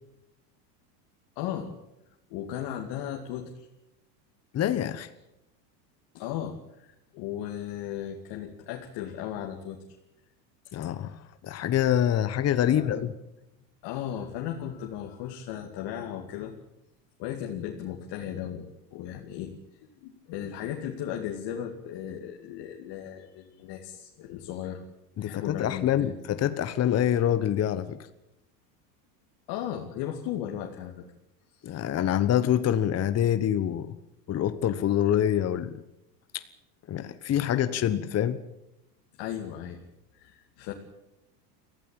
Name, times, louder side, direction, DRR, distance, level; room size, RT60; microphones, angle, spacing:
voice 1, 1.4-1.7 2.3-3.7 6.1-9.8 12.6-13.1 13.8-16.5 17.2-24.8 25.2-26.1 29.5-31.0 31.5-31.6 39.2-39.8 40.1-40.7, left 10 dB, 55° left, 2 dB, 2.5 m, -36 dB
voice 2, 4.5-5.1 10.7-11.1 11.4-13.1 25.2-28.0 31.6-34.0 34.3-35.8 36.3-36.4 36.9-38.4, left 10 dB, 30° left, 11 dB, 1.2 m, -26 dB
23.5 x 15.0 x 8.9 m, 0.89 s
hypercardioid pair, 105°, 49 cm